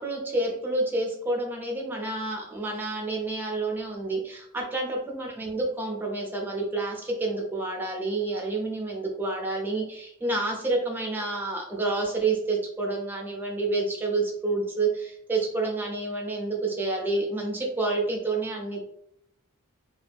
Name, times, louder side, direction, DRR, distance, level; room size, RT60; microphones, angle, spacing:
voice 1, 0.0-18.8, right 2 dB, 10° right, -1 dB, 0.5 m, -29 dB
2.3 x 2.0 x 3.4 m, 0.74 s
head